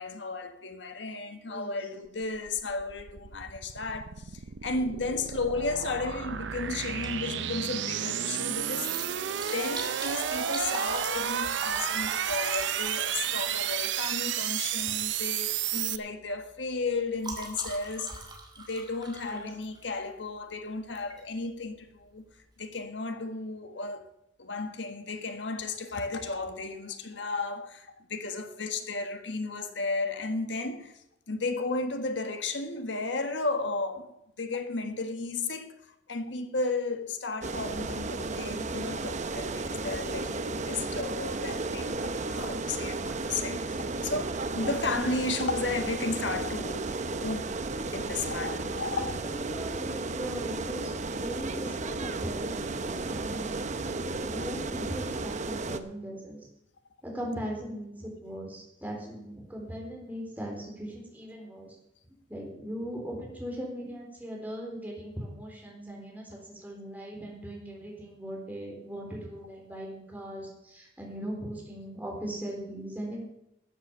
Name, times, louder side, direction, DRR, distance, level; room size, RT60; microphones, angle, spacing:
voice 1, 0.0-8.9 9.4-18.1 18.6-22.2 22.6-24.0 24.4-31.0 31.3-35.7 36.1-47.6 47.9-49.2 49.5-49.6 54.4-54.5, left 3 dB, 80° left, 1.5 m, -34 dB
voice 2, 1.5-1.8 19.1-19.5 48.6-56.4 57.0-61.8 62.3-73.3, equal, 10° right, 4.0 m, -39 dB
sound 1, 2.2-16.0, right 9 dB, 80° right, 0.6 m, -32 dB
Liquid, 7.0-7.3 7.6-7.7 8.6-13.8 14.8-15.0 15.4-15.6 15.9-20.0 20.9-21.2 21.7-21.8 22.0-22.1, right 3 dB, 25° right, 2.6 m, -42 dB
sound 2, 37.4-55.8, right 3 dB, 40° right, 0.8 m, -33 dB
13.0 x 8.0 x 6.9 m
head